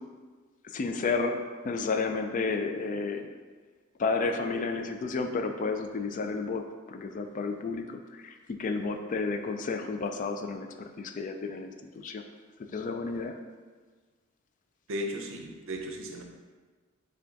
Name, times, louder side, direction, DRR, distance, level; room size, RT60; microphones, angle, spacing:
voice 1, 0.6-3.3 4.0-12.2 12.7-13.4, left 4 dB, 40° left, 5 dB, 0.3 m, -32 dB
voice 2, 14.9-16.2, equal, 65° right, 3 dB, 0.6 m, -35 dB
5.8 x 2.3 x 3.9 m, 1.4 s
head